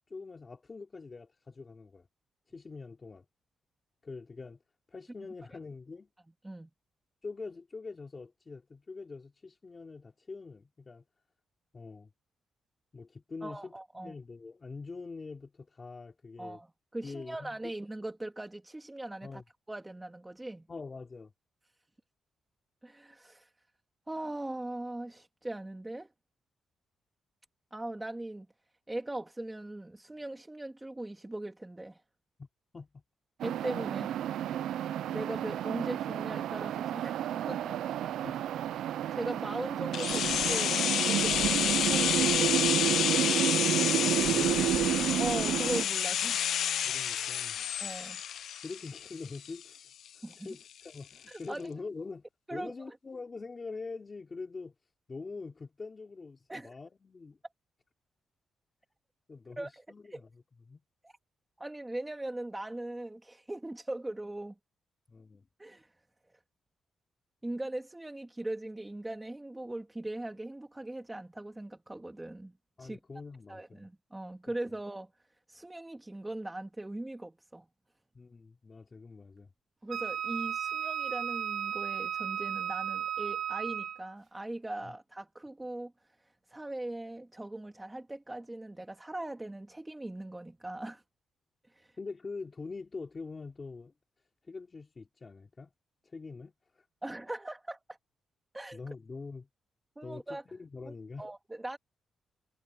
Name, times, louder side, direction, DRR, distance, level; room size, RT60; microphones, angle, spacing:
voice 1, 0.0-2.1 2.5-3.3 4.0-4.6 4.9-6.1 7.2-11.0 11.7-12.1 12.9-16.6 17.0-17.7 19.2-19.4 20.7-21.3 32.4-32.5 32.7-33.0 38.2-38.4 43.8-45.0 46.8-47.6 48.6-52.3 52.5-54.8 55.1-57.4 59.3-60.8 65.1-65.5 72.8-73.9 74.5-74.6 78.1-79.5 84.8-84.9 92.0-93.9 94.4-95.7 96.0-96.9 98.7-99.5 100.0-101.3, left 4 dB, 30° left, 3.4 m, -44 dB
voice 2, 13.4-14.1 16.4-16.7 16.9-19.4 19.7-20.7 22.8-23.5 24.1-26.1 27.7-28.5 28.9-32.0 33.4-34.2 35.0-37.8 39.1-42.7 45.2-46.4 47.8-48.2 50.2-50.5 51.3-51.7 52.5-53.0 56.5-56.7 59.6-59.8 60.1-60.2 61.0-61.1 61.6-64.5 65.6-65.9 67.4-72.5 72.8-73.0 73.5-75.1 75.5-77.7 79.8-91.0 91.6-92.0 97.0-98.0 98.5-98.8 100.0-100.4 100.9-101.8, right 1 dB, 10° right, 2.7 m, -40 dB
sound 1, 33.4-45.8, right 11 dB, 90° right, 0.5 m, -31 dB
sound 2, 39.9-49.8 50.1-50.2, left 10 dB, 70° left, 0.5 m, -30 dB
Wind instrument woodwind instrument, 79.9-84.1, right 9 dB, 50° right, 2.2 m, -34 dB
cardioid pair, 135°, 0 cm